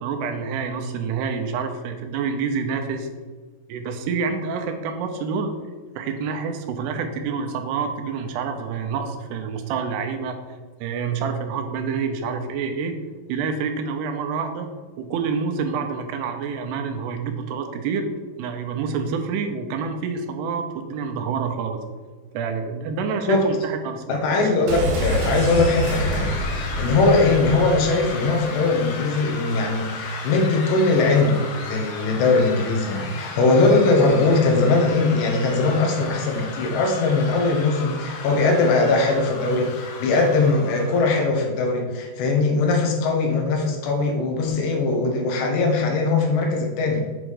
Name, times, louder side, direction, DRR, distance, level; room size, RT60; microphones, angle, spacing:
voice 1, 0.0-3.1 3.7-5.6 6.0-10.4 10.8-13.0 13.3-14.7 15.0-18.1 18.4-21.8 22.3-24.3, right 5 dB, 80° right, 5 dB, 2.7 m, -27 dB
voice 2, 24.1-26.3 26.8-47.0, left 3 dB, 85° left, 2 dB, 3.4 m, -20 dB
sound 1, 24.7-28.5 28.7-28.8, right 1 dB, 55° right, 2.2 m, -27 dB
sound 2, 25.0-41.3, left 4 dB, 70° left, 2.6 m, -35 dB
8.0 x 3.7 x 6.3 m, 1.4 s
omnidirectional pair, 4.8 m